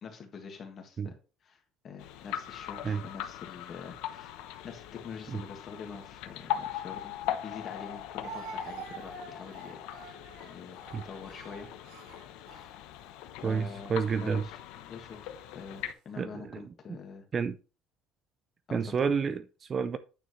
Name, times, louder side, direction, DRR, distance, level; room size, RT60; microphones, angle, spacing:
voice 1, 0.0-1.2 1.4-4.4 4.6-7.1 7.4-10.2 10.4-11.7 12.5-12.7 13.4-15.2 15.5-17.3 18.7-18.9, left 6 dB, 35° left, 1.9 m, -45 dB
sound 1, 2.0-15.9, left 12 dB, 85° left, 0.8 m, -40 dB
Speech, 7.1-7.2 8.2-13.1 13.9-14.1 15.1-15.7, right 5 dB, 90° right, 4.0 m, -47 dB
voice 2, 13.4-14.4 16.2-16.6 17.3-17.6 18.7-20.0, right 6 dB, 25° right, 0.4 m, -30 dB
9.2 x 6.6 x 3.2 m
cardioid pair, 170°, 0 cm